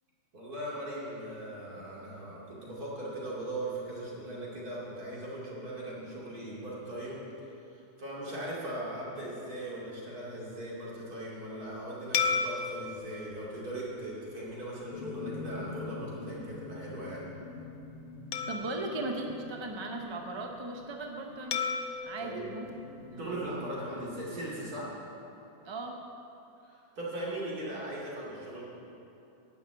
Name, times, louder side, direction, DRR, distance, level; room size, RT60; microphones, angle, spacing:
voice 1, 0.3-7.2 8.0-17.2 22.2-22.4 23.2-24.9 26.6-28.6, right 1 dB, 60° right, -6 dB, 3.1 m, -39 dB
sound 1, 12.1-14.8 15.4-15.6 18.3-20.1 21.5-23.8, left 5 dB, 80° left, 1.3 m, -36 dB
sound 2, 14.9-21.7 22.7-24.5, left 3 dB, 60° left, 1.6 m, -44 dB
voice 2, 18.5-21.6 22.0-22.7 23.0-23.5 25.6-26.0, right 2 dB, 25° right, 2 dB, 0.6 m, -38 dB
11.0 x 6.3 x 8.7 m, 2.8 s
omnidirectional pair, 1.8 m